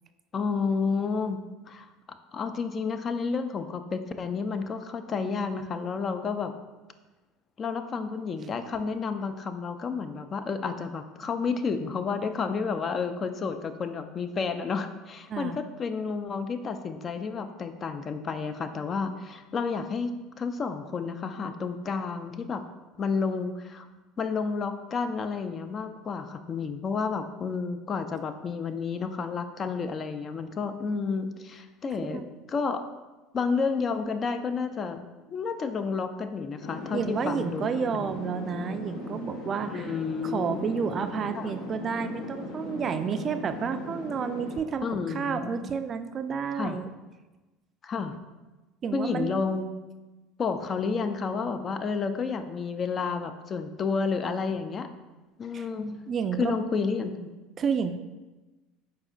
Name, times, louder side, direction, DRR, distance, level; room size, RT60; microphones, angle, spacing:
voice 1, 0.3-1.4 1.7-1.9 2.3-6.5 7.6-22.6 23.0-23.9 24.2-32.2 32.5-32.8 33.3-35.0 35.3-38.1 39.7-40.6 41.4-41.5 44.8-45.7 46.6-46.8 47.8-48.2 48.9-49.6 50.4-54.9 55.4-56.0 56.4-57.3, left 5 dB, 35° left, 9 dB, 0.4 m, -31 dB
sound 1, 36.6-44.6, left 1 dB, 70° left, 0.7 m, -38 dB
voice 2, 36.9-39.9 40.2-46.9 48.8-49.4 55.5-55.7 56.1-56.5 57.6-57.9, right 6 dB, 40° right, 9 dB, 0.3 m, -30 dB
4.7 x 4.3 x 2.4 m, 1.2 s
hypercardioid pair, 85°, 0 cm